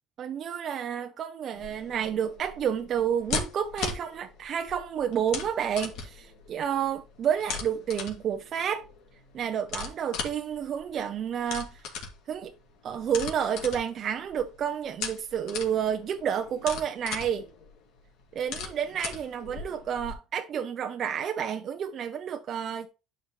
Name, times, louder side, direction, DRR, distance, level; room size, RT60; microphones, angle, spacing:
voice 1, 0.2-8.8 9.3-11.7 12.3-12.5 12.8-17.5 18.3-22.9, right 8 dB, 40° right, 0.7 m, -30 dB
sound 1, 1.6-20.1, left 5 dB, 70° left, 2.5 m, -39 dB
11.5 x 4.9 x 3.2 m
cardioid pair, 150°, 0 cm